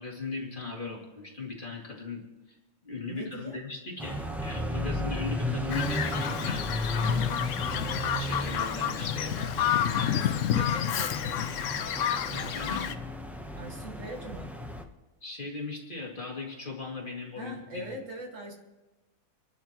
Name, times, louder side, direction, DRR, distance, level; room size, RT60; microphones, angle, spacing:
voice 1, 0.0-2.2 2.5-2.6 2.8-6.7 7.0-7.3 8.2-9.3 9.7-10.8 12.3-12.9 15.2-18.0, left 3 dB, 30° left, -3 dB, 2.6 m, -39 dB
voice 2, 3.1-3.6 10.0-11.5 13.5-14.5 17.4-18.5, right 1 dB, 55° right, 0 dB, 2.2 m, -42 dB
sound 1, 4.0-14.8, left 1 dB, ahead, 0.7 m, -34 dB
Bird vocalization bird call bird song, 5.7-12.9, left 9 dB, 65° left, 0.9 m, -30 dB
28.5 x 11.5 x 3.0 m, 1.1 s
omnidirectional pair, 1.6 m